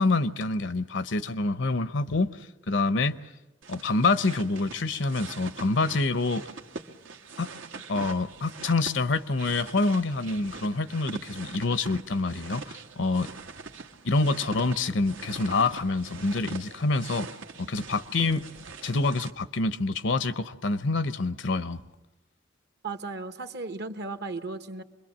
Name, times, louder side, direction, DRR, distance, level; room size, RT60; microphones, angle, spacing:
voice 1, 0.0-2.3 2.7-3.2 3.7-6.4 7.4-7.5 7.9-13.3 14.0-17.3 17.6-18.4 18.8-21.8, left 3 dB, 65° left, 0.8 m, -26 dB
sound 1, 3.6-19.3, right 4 dB, 80° right, 1.3 m, -43 dB
voice 2, 22.8-24.8, right 3 dB, 60° right, 1.2 m, -35 dB
26.0 x 22.0 x 7.4 m
head